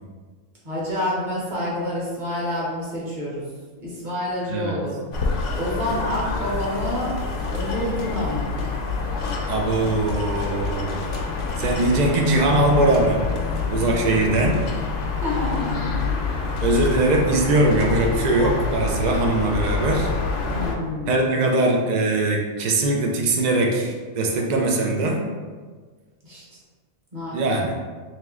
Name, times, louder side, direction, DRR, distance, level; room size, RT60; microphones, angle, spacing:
voice 1, 0.6-3.4 3.8-5.0 5.5-7.2 7.5-8.6 15.2-16.0 20.4-21.2 26.2-26.6 27.1-27.7, left 1 dB, 40° right, -6 dB, 1.2 m, -28 dB
sound 1, 5.1-20.8, left 4 dB, 70° left, 0.8 m, -27 dB
voice 2, 9.5-11.0 11.6-13.2 13.7-14.6 16.6-20.1 21.1-25.2 27.3-27.7, right 2 dB, 90° right, 1 dB, 0.3 m, -21 dB
3.0 x 2.9 x 3.6 m, 1.5 s
omnidirectional pair, 1.3 m